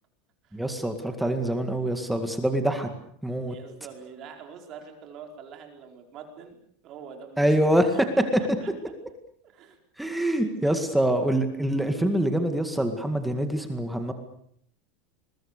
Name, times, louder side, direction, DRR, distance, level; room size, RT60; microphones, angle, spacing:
voice 1, 0.5-2.9 3.2-3.6 7.4-8.0 10.0-14.1, right 1 dB, 5° right, 6 dB, 2.0 m, -25 dB
voice 2, 3.5-6.6 6.8-7.6 7.9-8.7 9.4-9.8 10.4-10.8, right 7 dB, 35° right, 4 dB, 4.8 m, -45 dB
28.5 x 22.0 x 6.8 m, 0.67 s
supercardioid pair, 165°, 0 cm